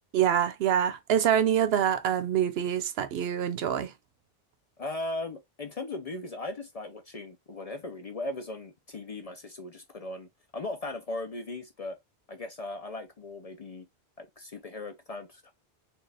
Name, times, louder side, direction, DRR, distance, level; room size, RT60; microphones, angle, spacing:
voice 1, 0.1-3.9, right 9 dB, 75° right, 0.8 m, -25 dB
voice 2, 4.8-10.3 10.5-12.0 12.3-13.9 14.2-15.5, left 2 dB, 45° left, 0.5 m, -38 dB
4.3 x 2.3 x 3.3 m
omnidirectional pair, 1.1 m